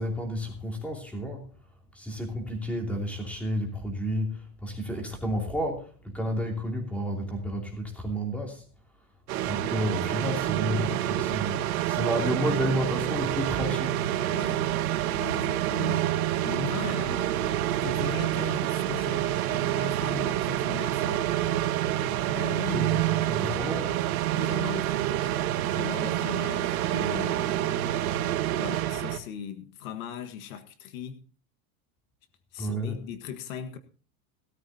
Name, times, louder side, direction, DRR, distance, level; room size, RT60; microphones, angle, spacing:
voice 1, 0.0-1.5 1.9-8.6 9.5-14.0 22.7-24.0 32.6-33.0, equal, 5° left, 2.9 m, -31 dB
sound 1, 9.3-29.2, right 13 dB, 75° right, 1.6 m, -27 dB
voice 2, 14.3-14.6 15.2-17.3 17.8-21.2 22.3-22.9 24.3-25.3 25.7-27.7 28.5-31.2 32.5-33.8, left 9 dB, 70° left, 1.6 m, -38 dB
18.0 x 13.0 x 2.8 m
supercardioid pair, 160°, 43 cm